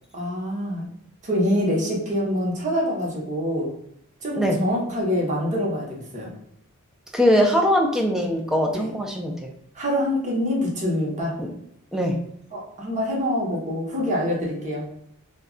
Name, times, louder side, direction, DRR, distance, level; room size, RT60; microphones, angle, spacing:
voice 1, 0.1-0.8 1.2-3.7 4.2-6.3 8.7-8.9 9.7-11.3 12.5-14.9, equal, 35° right, -3 dB, 0.8 m, -25 dB
voice 2, 7.1-9.5 11.4-11.5 11.9-12.1, equal, ahead, 1 dB, 0.4 m, -21 dB
2.2 x 2.2 x 3.6 m, 0.72 s
head